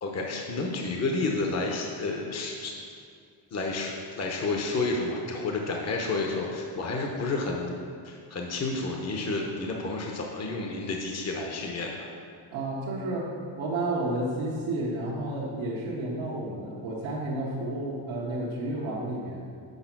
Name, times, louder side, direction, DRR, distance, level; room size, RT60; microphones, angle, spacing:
voice 1, 0.0-2.7 3.5-7.8 8.0-12.1, left 3 dB, 35° left, 0 dB, 0.9 m, -30 dB
voice 2, 12.5-13.3 13.6-19.4, right 1 dB, 85° right, -5 dB, 1.3 m, -31 dB
6.6 x 5.0 x 6.0 m, 2.2 s
cardioid pair, 110°, 47 cm